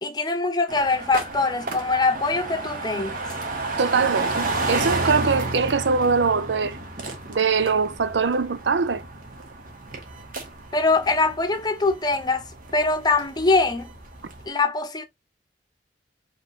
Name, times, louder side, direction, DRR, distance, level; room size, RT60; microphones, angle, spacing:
voice 1, 0.0-3.2 10.7-12.5 12.7-13.9 14.5-15.0, left 3 dB, 25° left, 0.8 m, -23 dB
sound 1, 0.7-14.5, right 2 dB, 50° right, 1.4 m, -32 dB
voice 2, 3.8-6.8 7.3-9.0, right 5 dB, 80° right, 0.6 m, -22 dB
5.2 x 3.3 x 2.7 m
head